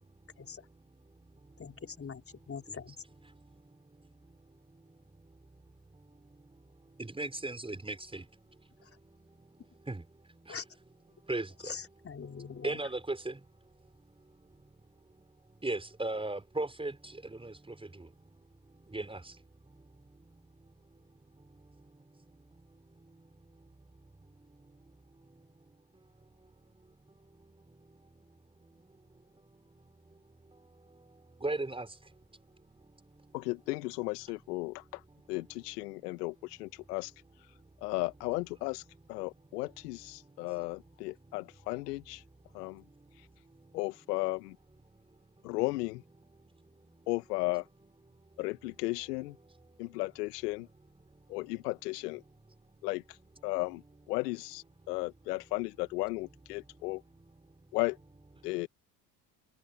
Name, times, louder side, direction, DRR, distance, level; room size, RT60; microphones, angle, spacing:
voice 1, 1.6-2.2 2.5-3.0 10.5-10.6 11.6-12.8, left 6 dB, 25° left, 3.6 m, -42 dB
voice 2, 7.0-8.2 9.9-10.0 11.3-11.5 12.6-13.3 15.6-16.9 17.4-17.5 18.9-19.2 31.4-31.9, right 2 dB, 10° right, 5.1 m, -34 dB
voice 3, 33.3-35.0 35.3-37.1 37.8-38.8 39.1-42.2 42.5-42.8 43.7-44.6 45.4-46.0 47.1-47.6 48.4-49.4 49.8-50.7 51.3-52.2 52.8-53.2 53.4-53.8 54.1-57.0 57.7-58.0 58.4-58.7, left 22 dB, 70° left, 2.0 m, -35 dB
hypercardioid pair, 70°, 49 cm